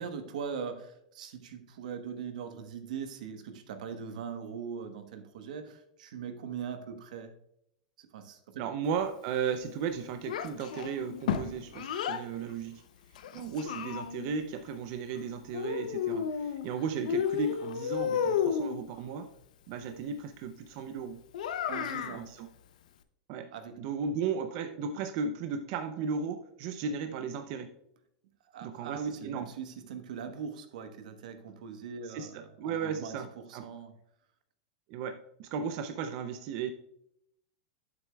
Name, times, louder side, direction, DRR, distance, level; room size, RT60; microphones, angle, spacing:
voice 1, 0.0-7.3 8.0-8.7 21.7-22.3 23.5-23.7 28.5-33.9, right 6 dB, 80° right, 7 dB, 1.1 m, -40 dB
voice 2, 8.6-12.8 13.3-19.3 19.7-21.2 22.1-22.5 23.3-23.5 23.8-27.7 28.6-29.5 32.1-33.6 34.9-36.7, right 6 dB, 50° right, 7 dB, 0.5 m, -35 dB
Child speech kid speaking, 10.3-12.2 13.2-14.4 15.5-16.7 17.0-18.8 21.3-22.2, left 8 dB, 85° left, 0.6 m, -32 dB
9.0 x 7.5 x 2.3 m, 0.75 s
supercardioid pair, 140°, 4 cm